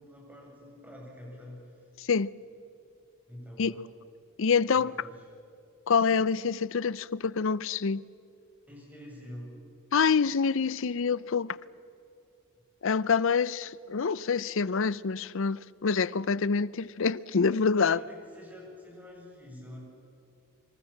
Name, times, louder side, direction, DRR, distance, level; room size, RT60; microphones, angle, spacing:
voice 1, 0.0-1.6 3.3-3.8 4.7-5.2 8.7-9.5 17.5-19.8, left 1 dB, 10° right, 7.9 m, -47 dB
voice 2, 2.0-2.3 3.6-3.9 4.4-4.9 5.9-8.0 9.9-11.6 12.8-18.0, left 5 dB, 65° left, 0.6 m, -26 dB
26.0 x 26.0 x 7.3 m
head